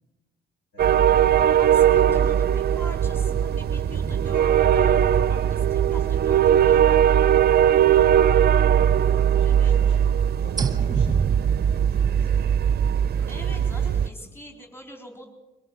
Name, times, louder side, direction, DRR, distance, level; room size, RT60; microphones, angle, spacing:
voice 1, 0.7-1.3 1.9-2.3 8.4-12.8 13.5-14.4, left 1 dB, 65° left, 2 dB, 3.7 m, -45 dB
sound 1, 0.8-14.1, right 9 dB, 50° right, 0.6 m, -20 dB
voice 2, 1.6-8.1 9.0-9.7 12.9-15.3, equal, 10° left, 1 dB, 3.8 m, -44 dB
sound 2, 3.9-8.0 8.3-8.4 10.6-12.3, right 5 dB, 20° right, 1.1 m, -33 dB
23.0 x 18.0 x 7.6 m, 1.1 s
cardioid pair, 90°, 20 cm